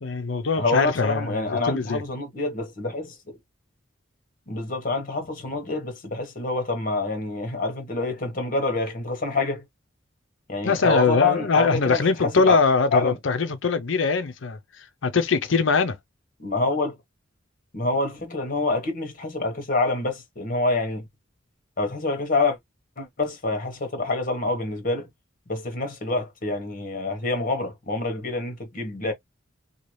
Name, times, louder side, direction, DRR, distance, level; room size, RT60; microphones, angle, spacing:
voice 1, 0.0-2.0 10.6-14.6 15.0-15.9, left 4 dB, 70° left, 0.6 m, -22 dB
voice 2, 0.6-3.4 4.5-9.6 10.5-12.6 12.9-13.2 16.4-16.9 17.7-21.1 21.8-22.6 23.0-25.1 25.5-29.1, left 3 dB, 45° left, 1.2 m, -26 dB
2.8 x 2.3 x 3.1 m
head